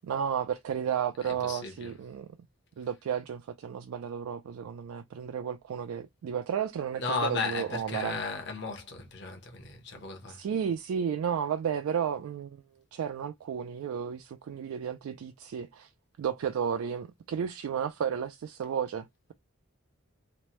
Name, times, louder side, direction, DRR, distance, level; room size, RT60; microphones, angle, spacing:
voice 1, 0.0-2.3 2.8-8.2 10.3-12.6 12.9-15.9 16.2-19.3, right 7 dB, 80° right, 0.3 m, -33 dB
voice 2, 1.2-2.0 7.0-10.4, left 4 dB, 55° left, 0.8 m, -35 dB
3.1 x 2.1 x 2.9 m
head